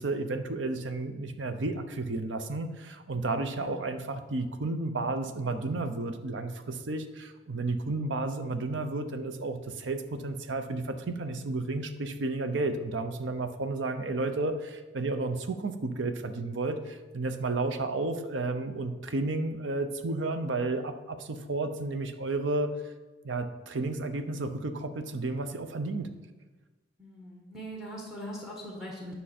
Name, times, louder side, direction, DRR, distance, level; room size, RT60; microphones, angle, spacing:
voice 1, 0.0-22.7 23.2-26.1, right 2 dB, 80° right, 8 dB, 0.7 m, -32 dB
voice 2, 27.0-29.2, equal, 5° right, -1 dB, 1.3 m, -41 dB
10.0 x 5.5 x 4.3 m, 1.2 s
head